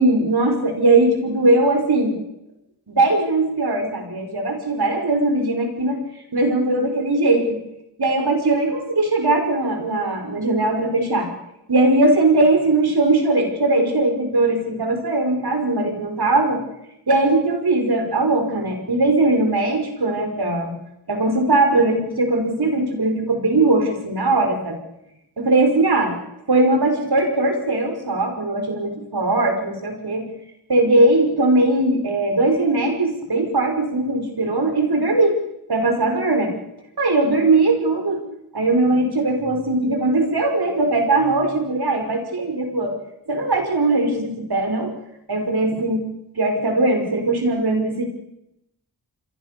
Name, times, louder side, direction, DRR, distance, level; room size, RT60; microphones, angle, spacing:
voice 1, 0.0-2.2 2.9-6.0 6.3-7.6 8.0-11.3 11.7-16.6 17.1-20.7 21.1-24.8 25.4-26.1 26.5-30.3 30.7-35.4 35.7-36.5 37.0-38.2 38.5-42.9 43.3-44.9 45.3-46.1 46.4-48.0, right 2 dB, 70° right, 5 dB, 5.8 m, -19 dB
29.0 x 22.0 x 7.0 m, 0.85 s
cardioid pair, 40°, 39 cm